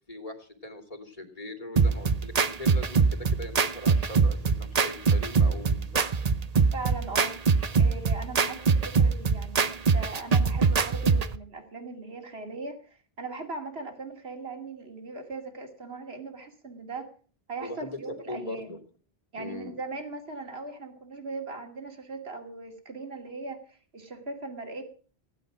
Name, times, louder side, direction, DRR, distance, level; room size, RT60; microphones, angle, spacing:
voice 1, 0.1-6.0 17.6-18.8 19.3-19.7, left 1 dB, 35° left, 5 dB, 2.8 m, -40 dB
sound 1, 1.8-11.4, right 5 dB, 40° right, 0.8 m, -23 dB
voice 2, 6.7-7.3 7.8-17.1 17.5-18.8 19.3-24.8, right 3 dB, 70° right, 5 dB, 2.7 m, -39 dB
17.5 x 11.0 x 6.1 m, 0.42 s
omnidirectional pair, 1.1 m